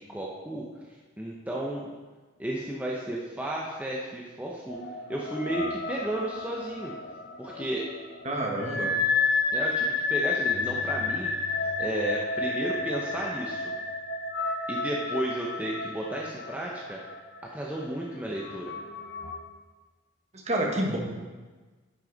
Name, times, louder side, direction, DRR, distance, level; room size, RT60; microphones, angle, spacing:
voice 1, 0.0-1.9 2.4-6.9 7.4-7.9 9.5-11.3 11.8-13.7 14.7-17.0 17.5-18.7, right 1 dB, 10° right, -3 dB, 0.7 m, -33 dB
sound 1, 4.7-19.4, left 4 dB, 55° left, 0.9 m, -31 dB
voice 2, 8.2-8.9 20.3-21.0, right 1 dB, 35° right, 0 dB, 1.3 m, -28 dB
10.0 x 6.3 x 3.9 m, 1.3 s
head